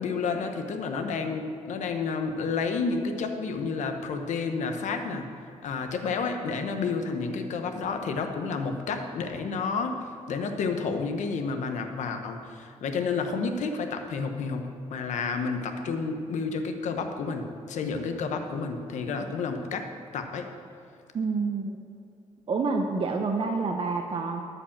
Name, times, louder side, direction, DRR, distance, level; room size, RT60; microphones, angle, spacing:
voice 1, 0.0-5.3 5.6-19.9 20.1-20.5, left 4 dB, 80° left, 5 dB, 1.1 m, -30 dB
voice 2, 21.1-21.8 22.5-24.4, right 4 dB, 45° right, 2 dB, 0.8 m, -28 dB
13.0 x 5.3 x 7.3 m, 2.6 s
cardioid pair, 105°, 12 cm